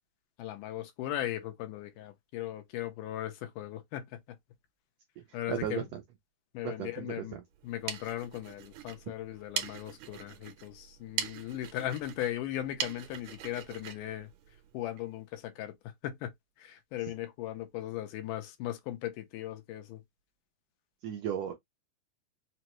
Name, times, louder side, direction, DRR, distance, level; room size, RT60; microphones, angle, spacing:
voice 1, 0.4-4.2 5.3-5.8 6.5-7.4 7.6-14.3 14.7-15.7 16.0-16.3 16.6-20.0, left 13 dB, 85° left, 2.3 m, -38 dB
voice 2, 5.2-6.0 6.6-7.1 7.3-7.4 21.0-21.5, right 9 dB, 85° right, 1.4 m, -35 dB
Rubbing Drum Sticks, 7.6-15.1, right 9 dB, 70° right, 1.8 m, -41 dB
5.4 x 2.0 x 3.0 m
omnidirectional pair, 3.7 m